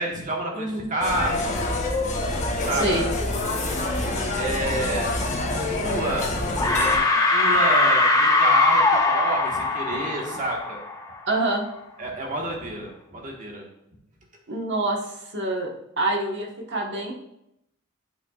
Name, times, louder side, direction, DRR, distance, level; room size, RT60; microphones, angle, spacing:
voice 1, 0.0-1.6 2.6-3.1 4.3-5.2 5.7-6.3 7.3-10.8 12.0-13.7, right 1 dB, 40° right, -1 dB, 1.6 m, -29 dB
voice 2, 0.5-0.9 2.8-3.0 7.1-7.2 11.3-11.6 14.5-15.0 15.3-15.7 16.0-17.1, right 2 dB, 60° right, -1 dB, 1.4 m, -26 dB
sound 1, 1.0-7.0, left 2 dB, 35° left, 1.2 m, -26 dB
sound 2, 5.9-6.3 6.6-11.1, left 2 dB, 15° left, 0.8 m, -21 dB
11.0 x 5.8 x 2.5 m, 0.81 s
head